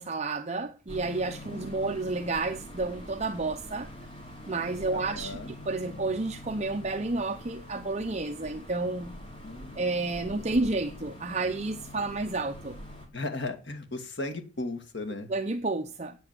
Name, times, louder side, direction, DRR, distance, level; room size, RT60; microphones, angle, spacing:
voice 1, 0.0-3.9 4.5-9.1 9.8-12.8 15.3-16.2, right 3 dB, 30° right, 0.7 m, -31 dB
sound 1, 0.9-13.1, left 1 dB, 25° left, 3.3 m, -44 dB
voice 2, 1.5-2.0 4.9-5.5 9.4-9.9 10.5-10.7 13.1-15.3, left 2 dB, 50° left, 2.1 m, -37 dB
9.0 x 8.3 x 7.5 m
head